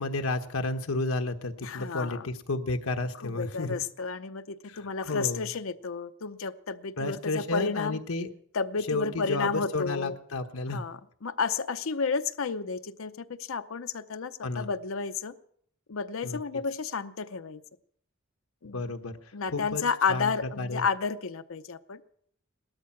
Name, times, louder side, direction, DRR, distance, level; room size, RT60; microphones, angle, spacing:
voice 1, 0.0-3.8 4.7-4.8 5.0-5.5 7.0-8.3 8.9-10.8 14.4-14.7 16.2-16.4 18.7-19.2 19.5-19.8 20.1-20.3 20.6-20.8, left 2 dB, 90° left, 5 dB, 1.1 m, -31 dB
voice 2, 1.6-2.3 3.2-8.0 8.5-10.2 10.7-15.3 15.9-17.6 18.6-18.9 19.3-22.0, left 5 dB, 70° left, 9 dB, 0.7 m, -32 dB
18.0 x 13.0 x 5.9 m, 0.65 s
head